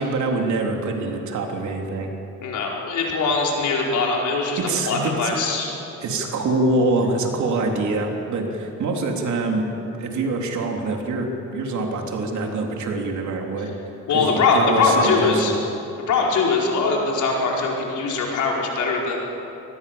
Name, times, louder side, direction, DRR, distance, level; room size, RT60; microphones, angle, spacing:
voice 1, 0.0-2.1 4.6-5.3 6.0-9.7 10.0-13.7 14.1-15.5, right 2 dB, 70° right, 1 dB, 3.5 m, -24 dB
voice 2, 2.4-4.6 4.8-5.7 14.1-15.5 16.1-19.2, left 4 dB, 75° left, -2 dB, 5.0 m, -21 dB
24.0 x 19.5 x 7.1 m, 2.9 s
cardioid pair, 90°, 30 cm